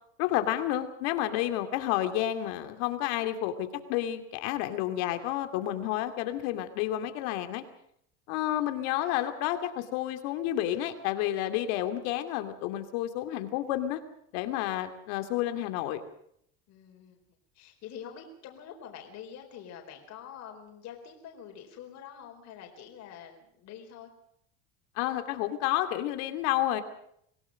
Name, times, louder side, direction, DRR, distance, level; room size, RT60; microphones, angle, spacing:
voice 1, 0.2-7.6 8.3-14.0 14.3-16.0 25.0-26.8, left 13 dB, 80° left, 8 dB, 2.7 m, -30 dB
voice 2, 16.7-17.2 17.5-24.1, left 8 dB, 55° left, 3 dB, 4.5 m, -46 dB
25.5 x 17.5 x 6.5 m, 0.70 s
cardioid pair, 125°, 33 cm